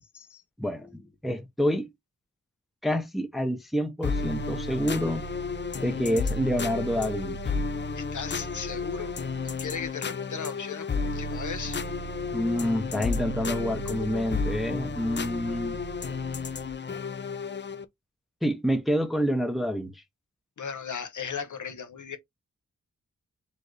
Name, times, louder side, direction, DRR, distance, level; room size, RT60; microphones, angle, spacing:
voice 1, 0.6-1.9 2.8-5.2 5.8-7.6 12.3-15.8 18.4-19.9, equal, ahead, 0.7 m, -28 dB
sound 1, 4.0-17.9, left 3 dB, 35° left, 0.5 m, -32 dB
voice 2, 7.9-9.2 9.4-11.8 20.6-22.2, left 6 dB, 70° left, 1.0 m, -37 dB
4.3 x 3.0 x 3.2 m
wide cardioid pair, 100°, 31 cm